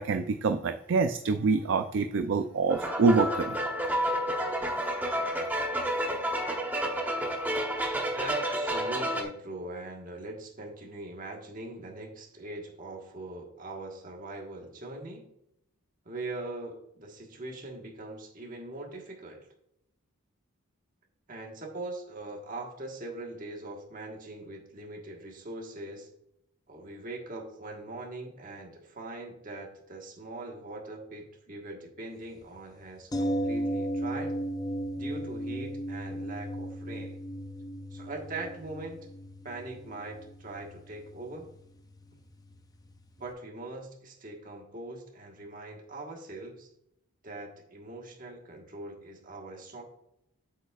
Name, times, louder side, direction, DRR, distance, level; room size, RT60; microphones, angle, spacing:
voice 1, 0.0-3.6 4.0-4.1, right 4 dB, 55° right, 8 dB, 0.3 m, -26 dB
sound 1, 2.7-9.2, equal, 10° right, 0.8 m, -30 dB
voice 2, 8.1-15.3 16.0-19.5 21.3-26.1 26.7-34.3 34.9-37.2 37.9-39.1 39.4-41.5 43.2-46.7 47.2-49.8, right 2 dB, 35° right, 1 dB, 1.4 m, -41 dB
sound 2, 33.1-43.0 43.3-43.4, right 1 dB, 15° left, 0.4 m, -36 dB
8.1 x 7.2 x 2.4 m, 0.79 s
head